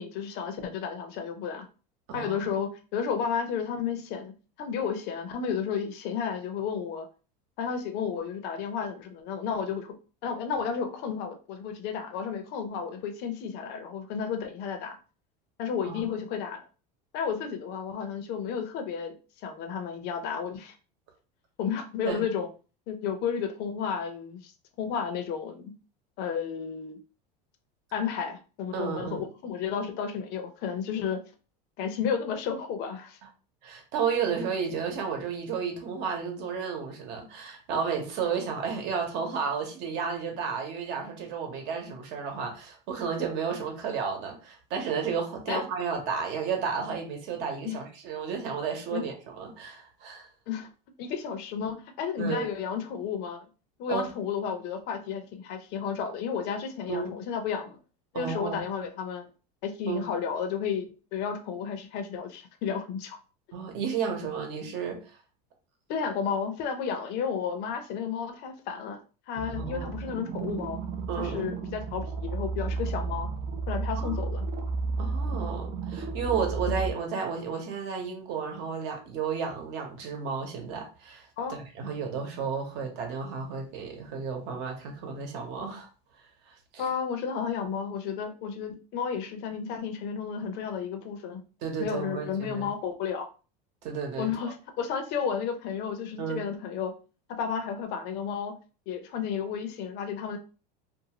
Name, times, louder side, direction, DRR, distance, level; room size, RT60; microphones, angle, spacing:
voice 1, 0.0-1.7 2.1-4.3 4.6-7.1 7.6-9.9 10.2-15.0 15.6-16.6 17.1-19.2 19.4-20.7 21.6-22.5 22.9-24.5 24.8-25.7 26.2-27.0 27.9-31.2 31.8-33.2 45.5-45.6 47.6-47.8 48.9-49.0 50.5-50.7 51.0-53.5 53.8-57.8 58.1-59.3 59.6-63.2 65.9-69.0 69.3-70.8 71.2-73.3 73.7-74.5 81.4-81.6 86.8-91.4 91.8-93.3 94.2-96.9 97.4-98.5 98.9-100.4, left 7 dB, 50° left, 6 dB, 0.6 m, -32 dB
voice 2, 2.1-2.5 15.9-16.2 22.0-22.2 28.7-29.2 33.6-50.3 52.2-52.5 53.9-54.1 56.9-57.1 58.1-58.6 59.9-60.1 63.5-65.2 69.5-69.9 71.1-71.5 73.9-74.2 75.0-85.9 86.5-86.9 91.6-92.7 93.8-94.3 96.2-96.5, right 6 dB, 55° right, 3 dB, 1.0 m, -32 dB
sound 1, 69.4-76.9, right 4 dB, 40° right, 0.5 m, -32 dB
2.6 x 2.4 x 2.9 m, 0.35 s
supercardioid pair, 130°, 21 cm